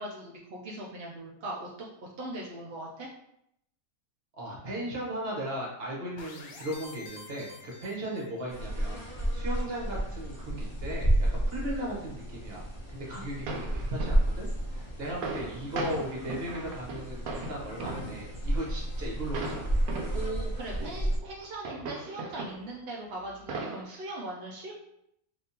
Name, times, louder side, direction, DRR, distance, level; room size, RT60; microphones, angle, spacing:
voice 1, 0.0-1.7 2.2-3.1 20.1-24.8, right 2 dB, 60° right, -3 dB, 0.6 m, -39 dB
voice 2, 4.4-12.6 12.9-19.6, right 1 dB, 45° right, -3 dB, 1.2 m, -37 dB
sound 1, 6.2-8.6, left 3 dB, 75° left, 1.0 m, -48 dB
sound 2, 8.5-21.2, right 1 dB, 20° left, 1.0 m, -32 dB
sound 3, 13.0-13.1 13.5-14.3 14.8-14.9 15.1-18.6 19.3-20.3 20.8-22.8 23.2-23.8, right 3 dB, 85° right, 1.1 m, -38 dB
3.5 x 2.8 x 2.8 m, 0.75 s
omnidirectional pair, 1.5 m